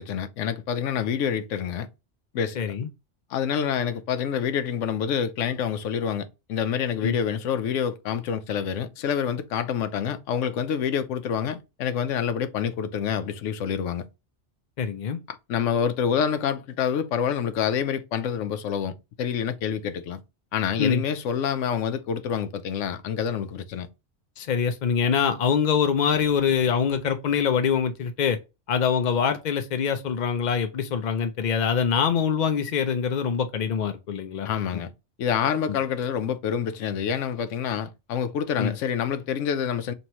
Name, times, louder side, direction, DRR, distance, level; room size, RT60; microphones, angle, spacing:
voice 1, 0.0-1.9 2.3-2.6 3.3-14.0 15.3-20.2 20.5-23.9 34.4-34.9 35.2-39.9, left 8 dB, 90° left, 1.0 m, -27 dB
voice 2, 2.6-2.9 7.0-7.2 14.8-15.2 20.8-21.0 24.4-28.4 28.7-34.5 34.7-34.8 35.7-35.8 38.6-38.7, left 7 dB, 65° left, 0.4 m, -24 dB
4.5 x 3.1 x 2.9 m
omnidirectional pair, 1.2 m